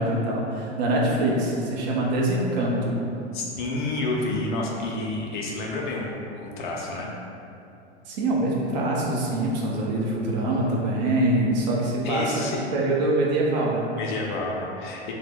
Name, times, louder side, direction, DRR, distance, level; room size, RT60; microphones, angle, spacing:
voice 1, 0.0-3.0 8.1-13.9, right 1 dB, 40° right, -3 dB, 0.5 m, -24 dB
voice 2, 3.3-7.1 12.0-12.7 14.0-15.1, left 2 dB, 45° left, -2 dB, 0.5 m, -29 dB
2.7 x 2.0 x 3.4 m, 2.7 s
figure-of-eight pair, 90°, 35 cm